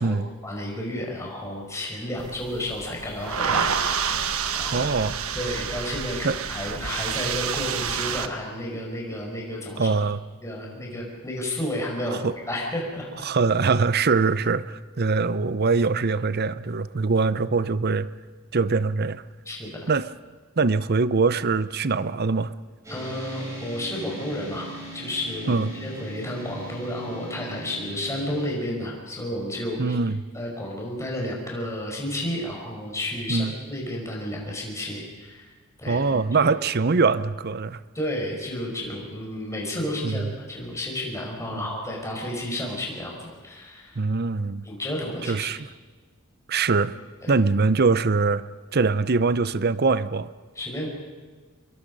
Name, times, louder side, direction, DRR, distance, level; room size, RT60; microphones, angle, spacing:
voice 1, 0.4-4.3 4.5-4.9 5.3-9.9 10.4-12.2 12.5-13.1 19.5-19.9 22.9-24.7 24.9-30.0 30.3-35.5 35.8-36.5 37.9-44.0 44.6-45.5 50.6-50.9, left 1 dB, 15° left, -1 dB, 5.4 m, -32 dB
sound 1, 2.2-8.3, right 7 dB, 80° right, 1.2 m, -28 dB
voice 2, 4.7-5.1 6.2-6.4 9.8-10.2 12.1-12.3 13.2-18.1 18.5-19.2 19.9-20.1 20.6-22.5 25.5-25.7 29.8-30.2 33.3-33.5 35.9-37.8 40.0-40.2 41.5-41.6 44.0-44.7 45.2-45.7 46.5-46.9 47.3-48.4 48.7-50.3, right 4 dB, 50° right, 15 dB, 0.7 m, -23 dB
sound 2, 22.8-28.6, right 1 dB, 15° right, 6.4 m, -39 dB
26.0 x 22.0 x 5.4 m, 1.4 s
head